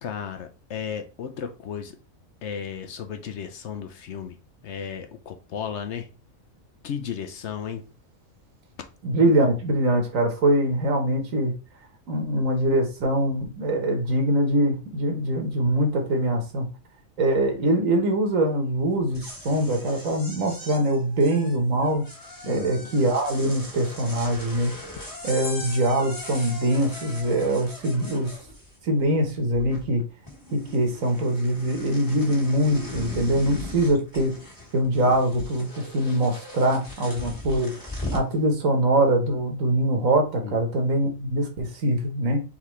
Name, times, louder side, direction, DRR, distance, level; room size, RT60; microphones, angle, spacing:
voice 1, 0.0-2.0 2.4-4.4 4.6-6.1 6.8-7.8 22.4-22.9 40.4-40.6, left 7 dB, 65° left, 0.9 m, -34 dB
voice 2, 9.0-11.6 12.1-16.7 17.2-22.0 22.5-24.7 25.2-28.3 28.8-30.0 30.5-34.4 34.7-37.7 38.1-42.4, right 1 dB, 75° right, 1.5 m, -23 dB
sound 1, 19.0-29.0 29.3-30.0 30.3-38.3, left 1 dB, 15° left, 1.5 m, -39 dB
4.2 x 4.0 x 3.1 m
omnidirectional pair, 1.4 m